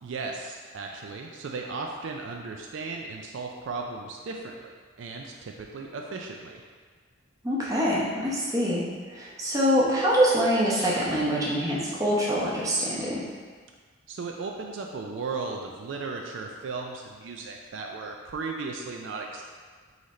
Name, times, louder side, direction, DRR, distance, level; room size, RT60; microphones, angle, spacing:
voice 1, 0.0-6.6 14.1-19.4, right 4 dB, 65° right, 1 dB, 0.4 m, -36 dB
voice 2, 7.4-8.8 9.1-13.2, equal, 15° right, -6 dB, 0.8 m, -24 dB
3.9 x 3.2 x 4.0 m, 1.6 s
head